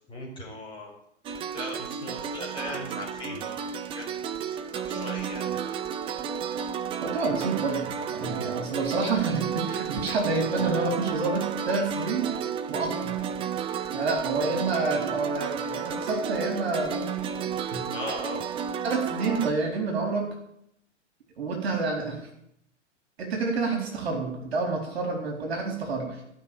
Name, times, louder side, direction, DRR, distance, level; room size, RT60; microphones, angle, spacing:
voice 1, 0.1-0.9 1.5-4.0 4.5-5.7 17.9-18.4, left 1 dB, 15° left, -2 dB, 5.0 m, -38 dB
sound 1, 1.2-19.5, right 7 dB, 15° right, 0.6 m, -32 dB
voice 2, 7.0-12.3 12.7-13.1 13.9-17.0 17.7-17.8 18.8-20.3 21.4-22.2 23.2-26.2, right 3 dB, 55° right, 1 dB, 4.2 m, -28 dB
16.5 x 6.1 x 8.8 m, 0.75 s
figure-of-eight pair, 110°, 36 cm